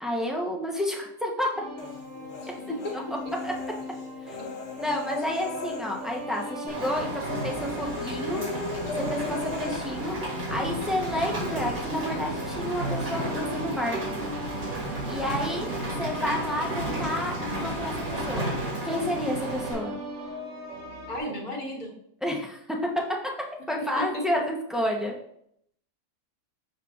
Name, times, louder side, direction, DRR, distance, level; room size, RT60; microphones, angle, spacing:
voice 1, 0.0-1.6 2.9-3.0 3.4-3.5 4.8-8.4 9.0-10.2 10.5-14.2 15.1-15.7 16.0-18.5 18.9-20.0 22.2-23.0 23.7-25.1, left 1 dB, ahead, -1 dB, 0.3 m, -30 dB
sound 1, 1.5-21.2, equal, 40° right, 1.3 m, -39 dB
Human voice, 1.8-3.0 3.3-6.5 6.8-7.0 7.3-9.8, left 4 dB, 60° left, 1.2 m, -38 dB
voice 2, 2.4-3.0 21.1-21.9 24.0-24.2, equal, 80° left, -1 dB, 1.8 m, -33 dB
Rain, 6.7-19.7, right 1 dB, 75° right, 2.5 m, -33 dB
6.4 x 6.2 x 2.3 m, 0.72 s
omnidirectional pair, 1.5 m